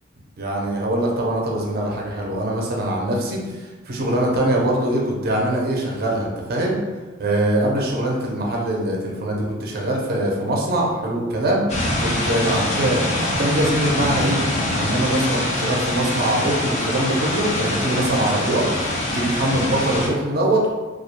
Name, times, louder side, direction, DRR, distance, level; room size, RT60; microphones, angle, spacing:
voice 1, 0.4-6.8 7.2-11.6 12.0-14.4 14.8-20.7, right 1 dB, 50° right, -2 dB, 0.5 m, -23 dB
sound 1, 11.7-20.1, left 1 dB, 35° left, 0.4 m, -24 dB
2.3 x 2.1 x 2.8 m, 1.2 s
head